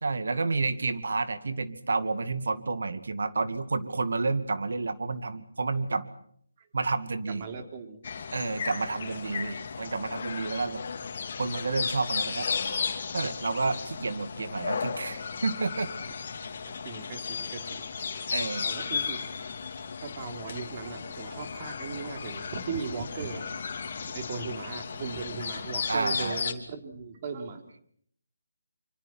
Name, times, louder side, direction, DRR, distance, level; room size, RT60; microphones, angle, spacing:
voice 1, 0.0-6.1 6.7-7.5 8.3-10.8 11.4-12.5 13.1-15.9 18.3-18.6 25.9-26.4, right 3 dB, 70° right, 11 dB, 2.3 m, -30 dB
voice 2, 7.3-8.3 8.7-9.5 11.3-11.4 12.0-12.1 16.7-17.9 18.2-18.3 18.6-19.2 20.0-23.5 23.8-27.8, right 5 dB, 35° right, 5 dB, 3.7 m, -38 dB
sound 1, 8.0-26.5, left 6 dB, 50° left, 2.9 m, -35 dB
25.5 x 25.5 x 6.1 m, 0.63 s
figure-of-eight pair, 155°, 0 cm